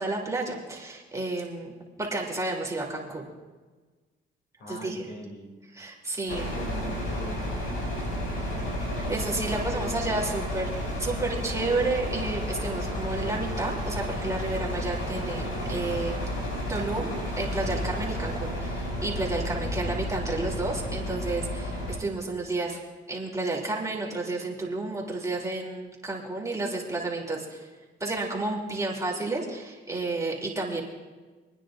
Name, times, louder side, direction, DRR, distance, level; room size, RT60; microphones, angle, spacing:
voice 1, 0.0-1.7 2.0-3.3 4.7-5.2 5.7-6.5 9.1-10.7 11.0-16.2 16.7-17.1 17.4-22.8 23.1-27.7 28.0-30.8, right 2 dB, 15° right, -3 dB, 3.1 m, -31 dB
voice 2, 4.6-5.5 6.3-7.6 8.5-8.8 9.6-10.1, equal, 60° left, 1 dB, 2.9 m, -41 dB
sound 1, 6.3-22.0, equal, 85° left, 4.7 m, -32 dB
28.0 x 9.9 x 2.6 m, 1.3 s
cardioid pair, 90°, 20 cm